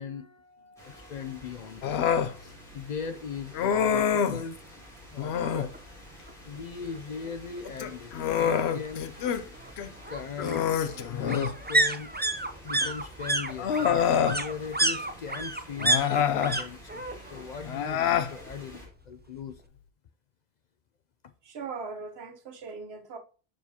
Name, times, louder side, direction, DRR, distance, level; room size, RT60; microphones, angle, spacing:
voice 1, 0.0-4.6 5.1-5.8 6.4-9.0 10.1-10.7 11.1-12.1 12.6-19.6, left 6 dB, 55° left, 0.5 m, -39 dB
sound 1, 0.8-18.9, equal, 5° left, 3.7 m, -50 dB
Human voice, 1.8-2.3 3.5-4.4 5.2-5.7 7.6-9.4 9.8-9.9 10.4-11.6 12.8-12.9 13.6-14.4 15.8-16.6 17.7-18.3, left 8 dB, 85° left, 0.9 m, -26 dB
sound 2, 5.7-5.8 6.2-6.3 6.6-7.6 8.8-16.6 16.9-17.5 17.7-18.8 19.1-19.2, right 2 dB, 15° right, 0.4 m, -30 dB
voice 2, 21.4-23.2, right 4 dB, 80° right, 1.2 m, -39 dB
7.0 x 6.2 x 2.8 m
omnidirectional pair, 1.1 m